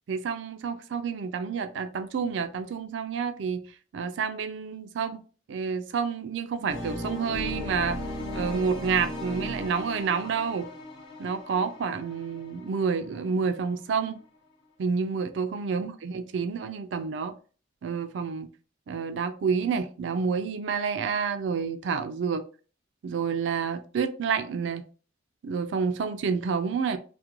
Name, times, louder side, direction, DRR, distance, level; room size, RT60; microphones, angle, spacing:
voice 1, 0.1-3.6 3.9-5.2 5.5-8.0 8.3-10.7 11.2-14.2 14.8-17.3 17.8-18.5 18.9-22.4 23.0-24.8 25.4-27.0, right 5 dB, 70° right, 9 dB, 0.3 m, -29 dB
sound 1, 6.7-13.5, left 1 dB, 75° left, 0.9 m, -37 dB
2.4 x 2.2 x 2.8 m, 0.38 s
head